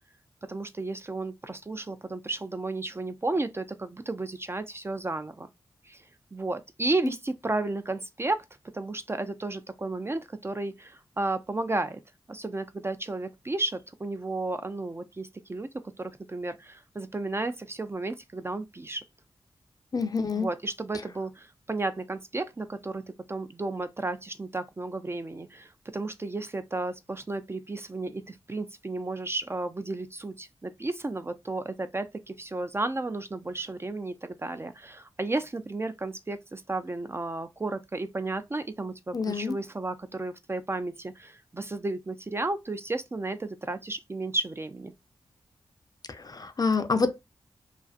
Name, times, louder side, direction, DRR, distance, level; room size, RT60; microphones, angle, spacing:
voice 1, 0.5-5.5 5.9-6.0 6.3-8.4 8.7-12.0 12.3-15.7 16.0-19.0 20.3-44.9, right 2 dB, 25° right, 0.3 m, -33 dB
voice 2, 19.9-20.5 39.1-39.6 46.3-47.2, left 4 dB, 40° left, 0.5 m, -27 dB
2.4 x 2.4 x 2.3 m
cardioid pair, 45°, 10 cm